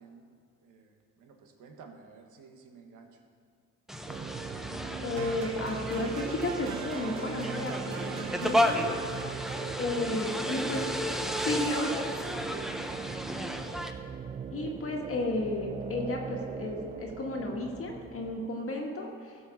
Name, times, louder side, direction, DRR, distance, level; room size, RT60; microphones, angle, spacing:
voice 1, 0.0-3.2 9.9-10.3 12.5-12.8, right 5 dB, 85° right, 4 dB, 1.5 m, -52 dB
sound 1, 3.9-13.9, equal, ahead, 0.8 m, -33 dB
sound 2, 4.1-18.5, right 6 dB, 25° right, 0.4 m, -40 dB
voice 2, 5.0-9.0 9.8-10.8 11.4-12.0 14.5-19.4, left 2 dB, 45° left, 0 dB, 1.6 m, -33 dB
sound 3, 5.2-13.2, right 6 dB, 65° right, 1.0 m, -45 dB
15.0 x 5.4 x 7.1 m, 2.2 s
cardioid pair, 90°, 30 cm